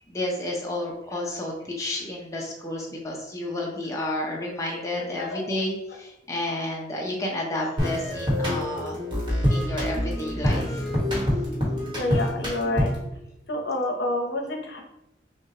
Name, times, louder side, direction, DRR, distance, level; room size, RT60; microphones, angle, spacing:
voice 1, 0.1-9.0 9.5-10.8, left 1 dB, 15° left, -2 dB, 0.6 m, -31 dB
voice 2, 4.7-5.4 12.0-12.9 13.5-14.8, left 2 dB, 70° left, 2 dB, 0.8 m, -28 dB
sound 1, 7.8-13.1, equal, 25° right, 1.3 m, -26 dB
6.0 x 2.3 x 2.8 m, 0.88 s
head